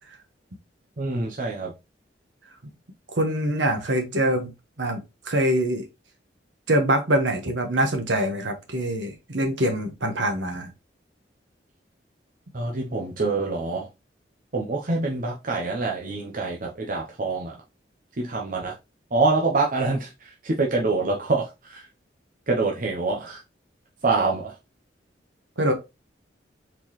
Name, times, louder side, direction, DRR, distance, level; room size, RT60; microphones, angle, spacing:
voice 1, 1.0-1.7 12.5-13.9 14.5-17.5 18.2-18.8 19.1-21.9 22.5-23.4 24.0-24.6, right 3 dB, 50° right, 0.8 m, -25 dB
voice 2, 3.1-4.5 4.8-5.8 6.7-10.7 25.6-25.7, right 1 dB, 90° right, 1.3 m, -24 dB
4.5 x 3.8 x 3.1 m
head